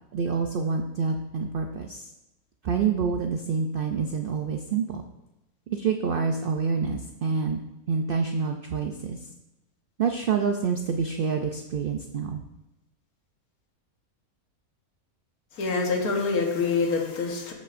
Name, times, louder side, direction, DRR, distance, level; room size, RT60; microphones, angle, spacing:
voice 1, 0.1-2.1 2.6-5.0 5.7-7.6 7.9-9.3 10.0-12.4, right 5 dB, 85° right, 4 dB, 0.4 m, -27 dB
voice 2, 15.5-17.5, left 4 dB, 80° left, 1 dB, 1.6 m, -26 dB
14.5 x 5.3 x 2.5 m, 0.95 s
omnidirectional pair, 1.6 m